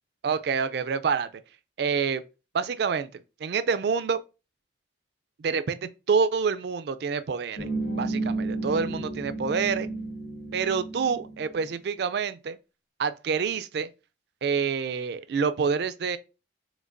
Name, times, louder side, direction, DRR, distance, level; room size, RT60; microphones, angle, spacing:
voice 1, 0.2-1.3 1.8-2.2 2.5-3.1 3.4-4.2 5.4-7.7 8.0-9.9 10.5-12.6 13.0-13.9 14.4-16.2, right 5 dB, 55° right, 0.3 m, -27 dB
sound 1, 7.6-11.6, right 2 dB, 55° left, 1.0 m, -32 dB
5.1 x 3.8 x 2.5 m
head